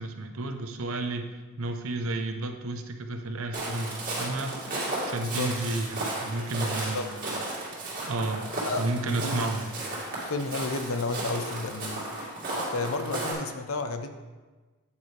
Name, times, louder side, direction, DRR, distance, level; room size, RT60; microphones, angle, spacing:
voice 1, 0.0-4.6 5.0-7.2 8.1-8.5 8.8-9.7, right 2 dB, 75° right, 6 dB, 0.8 m, -32 dB
Walk footsteps, 3.5-13.3, right 2 dB, 40° right, 2.3 m, -34 dB
voice 2, 5.1-5.6 6.9-7.1 8.7-9.4 10.2-12.0 12.7-14.1, left 3 dB, 70° left, 8 dB, 0.7 m, -32 dB
8.7 x 8.6 x 3.3 m, 1.3 s
head